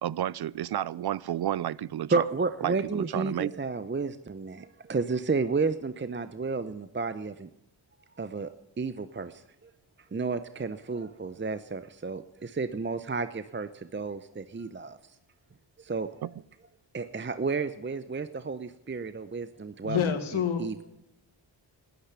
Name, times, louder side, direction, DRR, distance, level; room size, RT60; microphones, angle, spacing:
voice 1, 0.0-2.2 2.6-3.5 16.2-16.3, right 11 dB, 55° right, 0.6 m, -31 dB
voice 2, 2.1-7.5 8.2-9.7 10.1-15.2 15.8-16.3 16.9-20.8, right 4 dB, 25° right, 0.8 m, -32 dB
voice 3, 19.8-20.8, left 8 dB, 80° left, 1.9 m, -28 dB
12.5 x 10.5 x 9.7 m
supercardioid pair, 45°, 48 cm